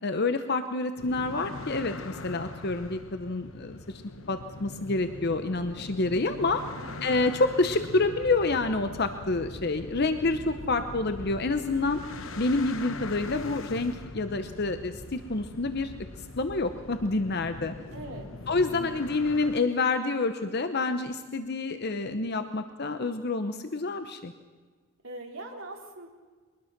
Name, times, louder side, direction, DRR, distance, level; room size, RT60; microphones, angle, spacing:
voice 1, 0.0-4.0 4.3-6.6 7.0-12.0 12.4-15.9 16.2-17.7 18.5-24.3, left 3 dB, 50° left, 9 dB, 0.9 m, -28 dB
sound 1, 1.0-19.6, left 2 dB, 65° left, 1.1 m, -42 dB
voice 2, 17.9-18.3 18.7-18.9 25.0-26.1, right 2 dB, 70° right, 1 dB, 3.5 m, -42 dB
23.0 x 20.0 x 6.0 m, 1.5 s
head